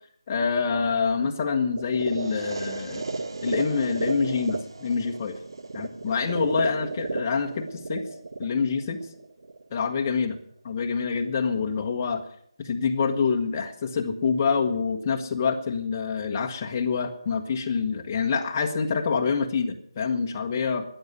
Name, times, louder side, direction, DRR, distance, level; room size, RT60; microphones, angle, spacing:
voice 1, 0.3-3.0 3.4-5.4 5.7-8.0 8.4-9.0 9.7-10.4 10.6-12.2 12.6-20.8, left 5 dB, 25° left, 2 dB, 1.4 m, -26 dB
sound 1, 1.8-9.8, right 3 dB, 55° right, 1.3 m, -33 dB
13.5 x 10.5 x 9.6 m, 0.69 s
figure-of-eight pair, 160°, 3 cm